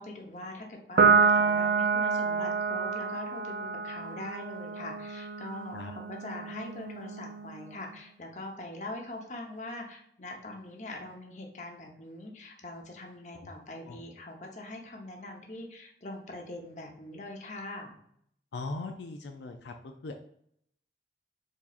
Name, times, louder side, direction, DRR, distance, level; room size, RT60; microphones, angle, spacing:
voice 1, 0.0-18.0, left 1 dB, 40° left, 2 dB, 0.9 m, -42 dB
Piano, 1.0-7.7, right 5 dB, 60° right, 0.4 m, -28 dB
voice 2, 18.5-20.1, left 3 dB, 80° left, 5 dB, 0.5 m, -39 dB
4.6 x 4.1 x 2.4 m, 0.68 s
head